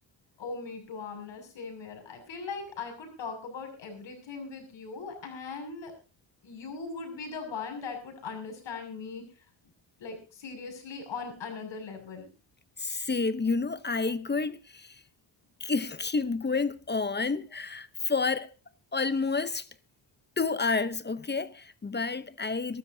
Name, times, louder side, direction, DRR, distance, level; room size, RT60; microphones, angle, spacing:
voice 1, 0.4-5.9 6.4-9.2 10.0-12.3, left 4 dB, 70° left, 6.7 m, -39 dB
voice 2, 12.8-15.0 15.6-18.5 18.9-19.7 20.4-22.8, left 4 dB, 25° left, 0.8 m, -29 dB
23.0 x 13.0 x 2.7 m
cardioid pair, 95°, 46 cm